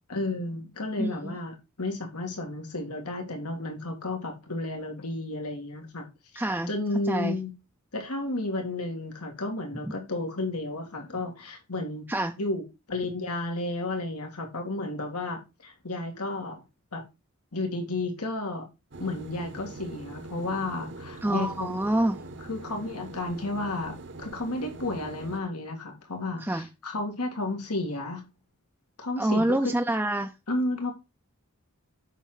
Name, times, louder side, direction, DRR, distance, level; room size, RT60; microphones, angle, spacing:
voice 1, 0.1-6.1 6.3-7.5 7.9-12.1 12.4-12.6 12.9-16.6 16.9-17.0 17.5-18.7 19.0-21.8 22.5-28.2 29.0-29.7 30.5-30.9, left 2 dB, 90° left, 2.3 m, -32 dB
voice 2, 1.0-1.3 6.4-6.7 7.1-7.4 12.1-12.3 21.2-22.2 26.4-26.7 29.2-30.3, right 1 dB, 10° right, 0.5 m, -26 dB
sound 1, 18.9-25.4, right 2 dB, 55° right, 1.0 m, -43 dB
8.1 x 6.1 x 4.0 m
head